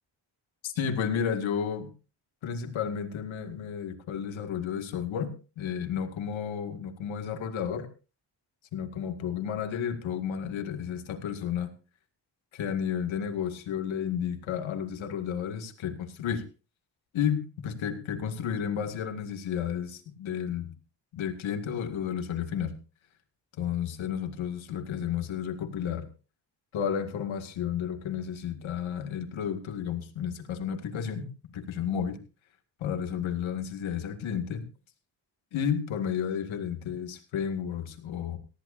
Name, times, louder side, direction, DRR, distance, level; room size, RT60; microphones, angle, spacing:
voice 1, 0.6-1.9 2.4-7.9 8.7-11.7 12.5-16.4 17.1-20.7 21.1-22.8 23.6-26.1 26.7-32.2 32.8-34.6 35.5-38.4, left 8 dB, 90° left, 7 dB, 2.1 m, -32 dB
18.5 x 14.5 x 2.6 m, 0.34 s
cardioid pair, 60°, 45 cm